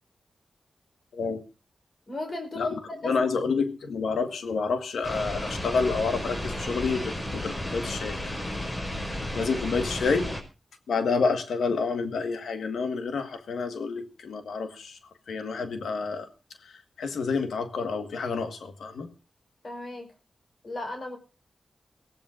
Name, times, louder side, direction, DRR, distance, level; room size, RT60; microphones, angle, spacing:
voice 1, 2.1-3.3 19.6-20.1 20.6-21.2, left 2 dB, 55° left, 4 dB, 4.7 m, -36 dB
voice 2, 3.0-10.3 10.9-15.0 15.3-16.3 16.6-19.1, left 4 dB, 85° left, 10 dB, 1.5 m, -29 dB
sound 1, 5.0-10.4, left 1 dB, 30° left, 5.2 m, -33 dB
23.0 x 15.5 x 2.5 m, 0.32 s
cardioid pair, 45°, 0 cm